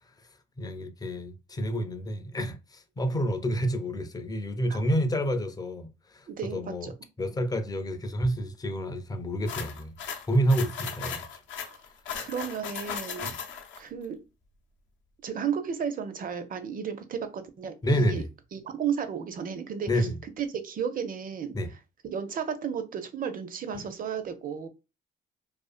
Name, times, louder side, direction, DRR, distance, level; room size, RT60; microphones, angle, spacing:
voice 1, 0.6-5.9 6.1-6.2 6.5-6.9 7.2-9.9 10.3-11.2 13.2-13.3 17.8-18.3 19.9-20.2 21.5-21.7 23.7-23.9, equal, 20° left, 0.4 m, -28 dB
voice 2, 6.3-6.9 11.6-11.8 12.2-13.3 13.8-14.2 15.2-18.2 18.5-20.1 20.4-21.5 22.0-24.7, right 7 dB, 45° right, 0.5 m, -33 dB
sound 1, 9.5-13.8, left 7 dB, 70° left, 0.5 m, -37 dB
2.4 x 2.4 x 2.4 m
cardioid pair, 90°, 20 cm